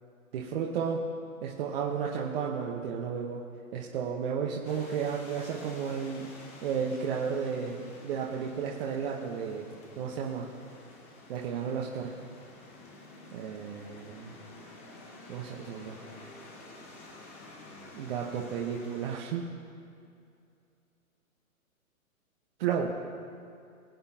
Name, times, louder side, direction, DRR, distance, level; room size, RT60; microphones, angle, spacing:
voice 1, 0.3-1.0 1.4-3.4 3.7-6.3 6.6-9.7 10.0-10.5 11.3-12.1 13.3-14.3 15.3-16.0 17.9-19.5 22.6-23.0, right 7 dB, 40° right, -2 dB, 1.1 m, -33 dB
sound 1, 4.6-19.2, left 2 dB, 10° left, 0.4 m, -50 dB
20.5 x 8.6 x 2.8 m, 2.4 s
hypercardioid pair, 130°, 43 cm